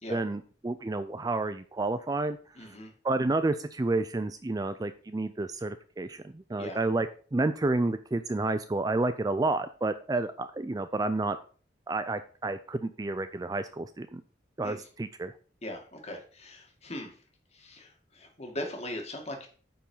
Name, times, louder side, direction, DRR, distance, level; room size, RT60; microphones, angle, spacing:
voice 1, 0.1-2.7 3.0-7.1 7.3-11.4 11.9-14.2 14.6-15.3, right 2 dB, 20° right, 11 dB, 0.4 m, -30 dB
voice 2, 2.6-2.9 6.6-6.8 14.6-14.9 15.6-17.2 17.5-19.5, left 1 dB, 35° left, 2 dB, 2.0 m, -40 dB
9.2 x 4.6 x 5.5 m, 0.41 s
head